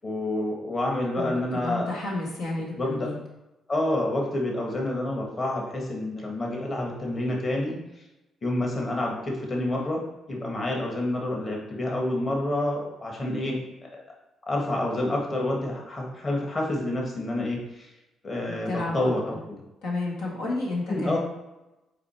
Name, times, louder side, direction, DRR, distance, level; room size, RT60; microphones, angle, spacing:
voice 1, 0.0-1.9 2.8-3.1 3.7-7.8 8.4-10.0 10.3-13.6 13.9-14.0 14.5-17.9 18.2-19.4 20.9-21.2, left 1 dB, 35° left, -1 dB, 1.6 m, -28 dB
voice 2, 1.2-3.2 18.5-19.1 19.8-21.2, left 2 dB, 85° left, -4 dB, 1.6 m, -31 dB
5.0 x 4.8 x 4.4 m, 0.95 s
cardioid pair, 90°, 0 cm